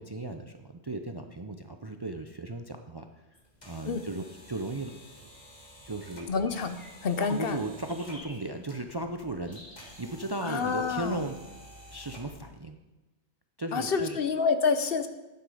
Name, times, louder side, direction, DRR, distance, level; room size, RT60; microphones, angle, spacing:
voice 1, 0.0-3.1 3.7-4.9 5.8-6.3 7.2-9.6 10.0-11.4 11.9-12.8 13.6-14.2, right 2 dB, 30° right, 6 dB, 0.5 m, -36 dB
sound 1, 3.3-12.5, equal, 40° left, 2.2 m, -51 dB
sound 2, 3.3-3.4 6.4-7.2 7.9-8.5 9.5-10.2, left 1 dB, 20° left, 2.4 m, -51 dB
voice 2, 6.3-6.8 7.0-7.6 10.4-11.3 13.7-15.1, left 5 dB, 60° left, 9 dB, 1.0 m, -28 dB
12.0 x 9.5 x 4.9 m, 1.1 s
omnidirectional pair, 1.1 m